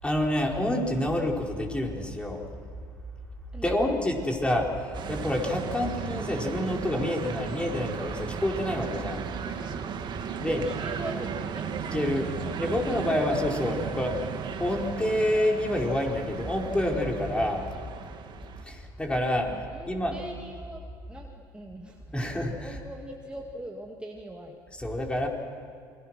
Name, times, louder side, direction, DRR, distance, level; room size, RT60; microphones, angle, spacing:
voice 1, 0.0-2.4 3.6-9.2 10.4-10.6 11.9-12.3 12.6-14.2 14.6-17.6 18.6-19.5 19.9-20.2 22.1-22.8 24.8-25.3, left 1 dB, 10° left, 0 dB, 4.6 m, -28 dB
voice 2, 3.5-4.3 5.6-5.9 10.4-12.1 12.4-13.1 19.5-20.8 21.1-22.0 22.6-24.6, right 1 dB, 10° right, 0 dB, 2.3 m, -41 dB
sound 1, 4.9-18.6, right 7 dB, 45° right, 2.2 m, -36 dB
28.5 x 22.0 x 6.2 m, 2.4 s
hypercardioid pair, 70°, 11 cm